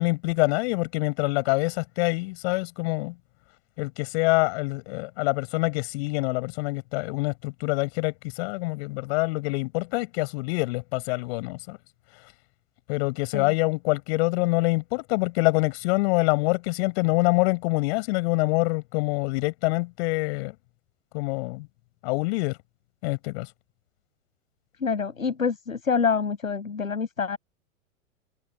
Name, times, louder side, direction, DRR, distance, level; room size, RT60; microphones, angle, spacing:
voice 1, 0.0-3.1 3.8-11.8 12.9-20.5 21.1-21.7 22.0-22.6 23.0-23.5, left 26 dB, 50° left, 6.1 m, -25 dB
voice 2, 24.8-27.4, left 5 dB, 85° left, 7.9 m, -26 dB
hypercardioid pair, 100°, 40 cm